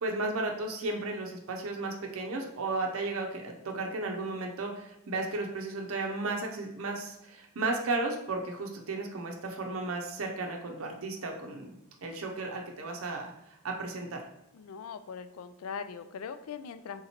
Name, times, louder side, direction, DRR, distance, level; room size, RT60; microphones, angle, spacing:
voice 1, 0.0-11.7 12.0-14.2, right 3 dB, 65° right, 2 dB, 0.6 m, -34 dB
voice 2, 14.5-17.0, left 6 dB, 70° left, 11 dB, 0.3 m, -41 dB
3.8 x 2.9 x 4.2 m, 0.87 s
head